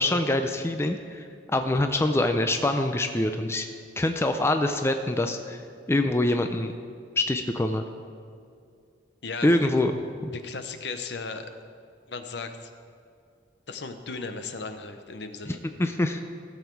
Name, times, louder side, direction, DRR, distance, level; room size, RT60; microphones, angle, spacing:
voice 1, 0.0-3.7 4.0-5.6 5.9-6.7 7.2-7.8 9.4-9.9 10.2-10.3 15.5-16.2, left 1 dB, 15° left, 6 dB, 0.4 m, -25 dB
voice 2, 9.2-9.6 10.3-11.5 12.1-12.7 13.7-15.6, left 4 dB, 65° left, 8 dB, 0.8 m, -36 dB
15.5 x 7.3 x 4.6 m, 2.3 s
head